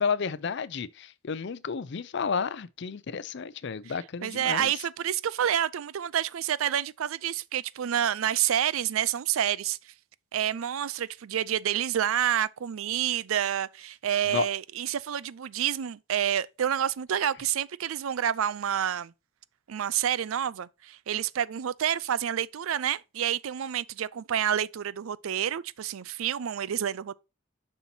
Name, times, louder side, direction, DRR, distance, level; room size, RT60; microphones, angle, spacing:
voice 1, 0.0-4.7 14.3-14.5, left 6 dB, 60° left, 0.5 m, -31 dB
voice 2, 4.2-9.8 10.3-19.1 19.7-27.1, right 10 dB, 80° right, 0.4 m, -28 dB
7.1 x 5.6 x 2.7 m
head